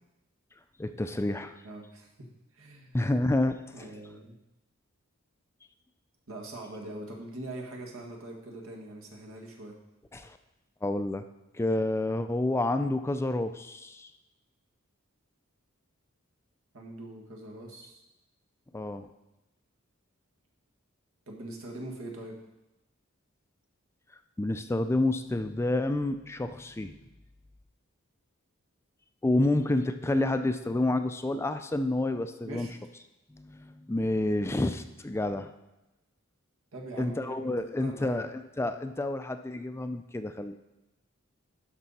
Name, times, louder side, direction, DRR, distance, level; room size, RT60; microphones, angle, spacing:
voice 1, 0.8-1.6 2.9-3.6 10.1-10.4 10.8-11.2 11.5-14.1 18.7-19.1 24.4-26.9 29.2-32.7 33.3-35.5 37.0-40.5, left 2 dB, 10° left, 9 dB, 0.4 m, -29 dB
voice 2, 1.6-2.1 2.5-3.0 3.7-4.4 6.3-9.8 16.7-18.0 21.3-22.4 32.5-32.7 36.7-38.2, right 1 dB, 85° right, 0 dB, 1.8 m, -42 dB
12.0 x 5.5 x 4.2 m, 0.98 s
head